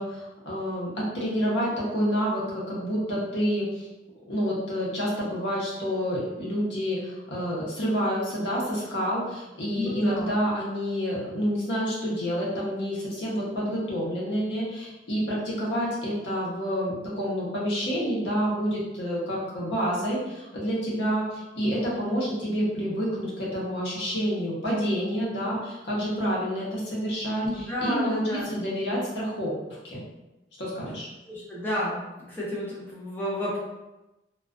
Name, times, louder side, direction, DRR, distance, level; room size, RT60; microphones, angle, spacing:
voice 1, 0.0-3.9 4.3-30.0 30.6-31.1, equal, 80° left, -5 dB, 0.8 m, -28 dB
voice 2, 9.7-10.3 27.4-28.5 31.3-32.0 32.3-33.6, left 1 dB, 10° left, -8 dB, 0.7 m, -31 dB
2.3 x 2.3 x 2.4 m, 1.0 s
head